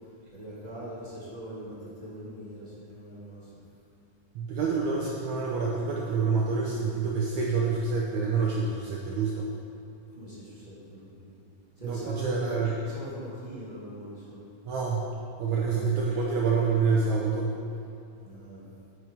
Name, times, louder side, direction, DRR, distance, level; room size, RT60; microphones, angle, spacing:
voice 1, 0.3-3.4 10.1-11.3 11.8-12.5 12.8-14.5 15.5-15.9 18.2-18.6, right 1 dB, 20° right, -9 dB, 1.1 m, -42 dB
voice 2, 4.4-9.5 11.8-12.8 14.7-15.1 15.4-17.6, right 4 dB, 75° right, -3 dB, 1.8 m, -27 dB
9.5 x 5.9 x 5.1 m, 2.7 s
omnidirectional pair, 4.1 m